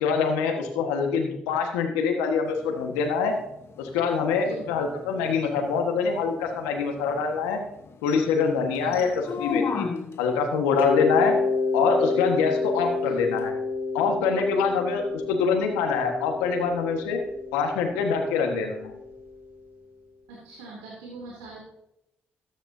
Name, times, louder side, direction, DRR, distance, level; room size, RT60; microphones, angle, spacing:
voice 1, 0.0-3.3 3.8-7.6 8.0-9.8 10.2-11.3 11.7-13.5 13.9-17.2 17.5-18.9, left 5 dB, 90° left, 3 dB, 1.4 m, -25 dB
sound 1, 2.5-10.4 13.4-13.5, left 6 dB, 60° left, 1.1 m, -37 dB
Mallet percussion, 10.8-19.4, left 4 dB, 50° right, 3.2 m, -29 dB
voice 2, 20.3-21.6, right 2 dB, 90° right, -4 dB, 2.6 m, -42 dB
13.5 x 10.0 x 2.7 m, 0.84 s
hypercardioid pair, 45°, 5 cm